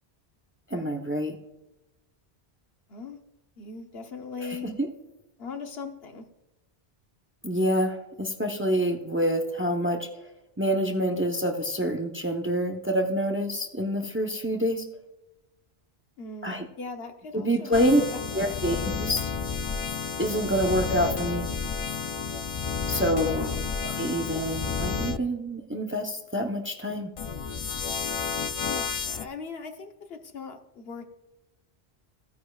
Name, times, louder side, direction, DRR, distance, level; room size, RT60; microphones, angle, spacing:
voice 1, 0.7-1.4 4.6-4.7 7.4-10.1 10.6-14.9 16.4-16.7 17.3-18.0 18.3-19.3 20.2-21.5 22.9-23.5 23.8-27.1, equal, 15° right, 3 dB, 0.7 m, -27 dB
voice 2, 3.6-4.7 5.4-6.3 16.2-18.6 23.2-23.6 28.7-31.0, left 4 dB, 70° left, 5 dB, 1.2 m, -40 dB
sound 1, 17.7-25.2 27.2-29.3, left 5 dB, 55° left, 0.4 m, -31 dB
15.5 x 9.5 x 2.4 m, 0.96 s
omnidirectional pair, 1.1 m